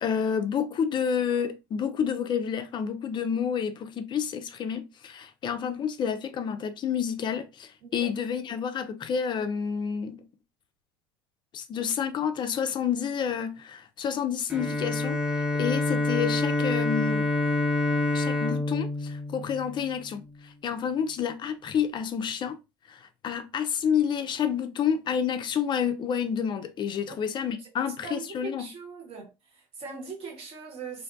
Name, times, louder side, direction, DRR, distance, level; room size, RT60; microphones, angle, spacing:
voice 1, 0.0-10.2 11.5-17.3 18.1-22.6 22.9-28.7, left 7 dB, 35° left, 0.4 m, -29 dB
Bowed string instrument, 14.5-20.2, left 2 dB, 5° right, 0.8 m, -27 dB
voice 2, 27.8-29.3 29.5-31.0, right 4 dB, 45° right, 1.2 m, -40 dB
2.5 x 2.2 x 2.4 m
hypercardioid pair, 75°, 14 cm